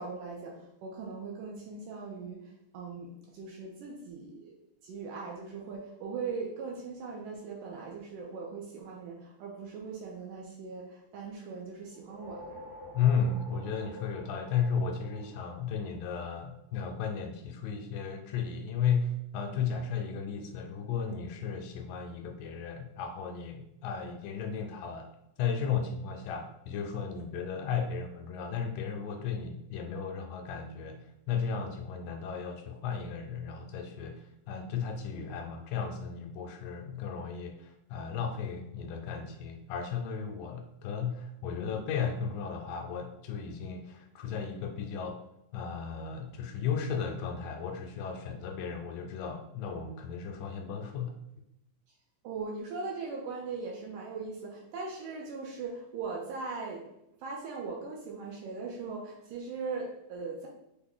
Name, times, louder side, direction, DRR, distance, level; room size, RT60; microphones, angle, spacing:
voice 1, 0.0-4.5 4.8-12.7 52.2-56.9 57.2-60.5, right 4 dB, 75° right, -1 dB, 2.0 m, -40 dB
sound 1, 11.9-16.5, left 1 dB, 60° right, 1.8 m, -49 dB
voice 2, 12.9-25.1 25.4-31.0 31.3-45.2 45.5-51.2, left 6 dB, 80° left, 4 dB, 2.1 m, -34 dB
5.8 x 2.1 x 3.6 m, 0.82 s
omnidirectional pair, 4.1 m